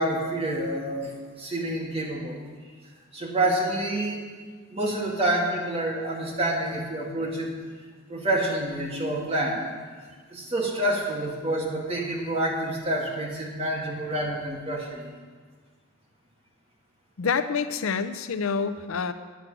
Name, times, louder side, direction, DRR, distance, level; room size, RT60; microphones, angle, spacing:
voice 1, 0.0-2.4 3.1-4.2 4.7-7.5 8.1-9.6 10.3-15.1, right 1 dB, 30° right, -2 dB, 2.2 m, -28 dB
voice 2, 17.2-19.1, left 5 dB, 70° left, 11 dB, 0.5 m, -27 dB
10.5 x 7.8 x 7.5 m, 1.5 s
head